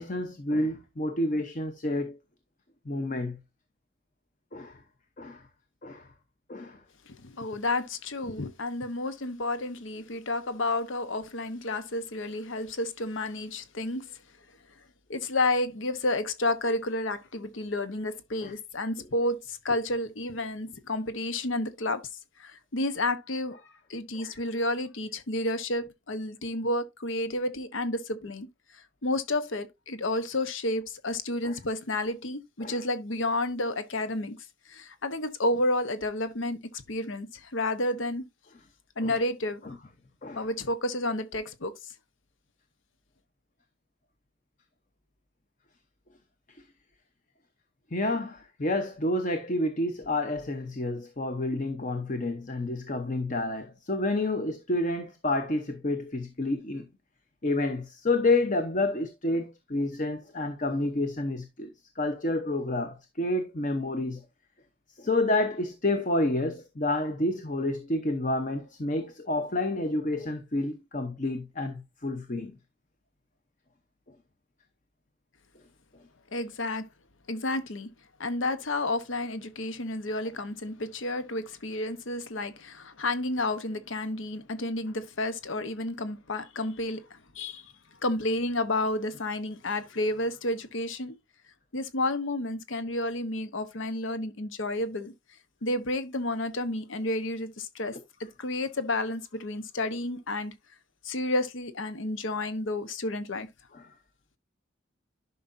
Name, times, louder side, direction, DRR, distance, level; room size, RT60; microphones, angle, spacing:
voice 1, 0.0-2.2 2.9-3.4 4.5-4.8 5.2-5.4 5.8-6.1 6.5-6.8 18.4-18.5 24.1-24.3 31.4-31.5 32.6-32.8 39.0-39.2 40.2-40.4 47.9-56.9 57.4-64.2 65.0-72.5 103.7-103.9, left 2 dB, 40° left, 0.9 m, -29 dB
voice 2, 7.1-14.2 15.1-22.1 22.4-23.6 23.9-28.5 28.7-34.4 34.7-38.2 39.0-39.7 40.4-41.7 76.3-76.9 77.3-77.9 78.2-87.7 88.0-91.1 91.7-95.1 95.6-100.5 101.0-103.5, left 2 dB, 80° left, 1.0 m, -31 dB
11.0 x 5.5 x 2.6 m
head